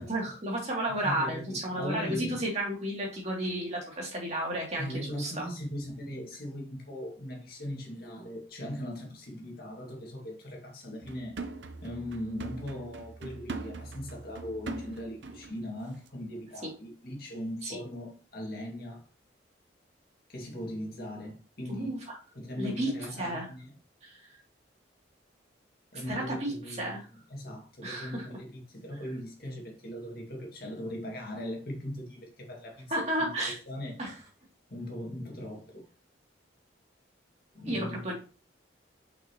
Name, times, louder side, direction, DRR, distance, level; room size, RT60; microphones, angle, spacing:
voice 1, 0.0-4.9 5.2-5.4 17.6-17.8 21.7-22.2 22.6-22.9 23.2-23.5 24.0-24.2 26.1-27.1 27.8-28.3 32.9-33.6 34.0-34.1 37.7-38.1, right 1 dB, 35° right, 2.7 m, -32 dB
voice 2, 1.0-2.4 4.8-11.4 11.8-19.1 20.3-22.0 22.3-23.7 25.9-27.0 27.3-34.0 34.7-35.9 37.5-38.0, equal, 50° left, 2.1 m, -39 dB
sound 1, 11.0-15.6 16.0-16.1, right 3 dB, 70° right, 0.7 m, -42 dB
6.0 x 5.7 x 3.0 m
head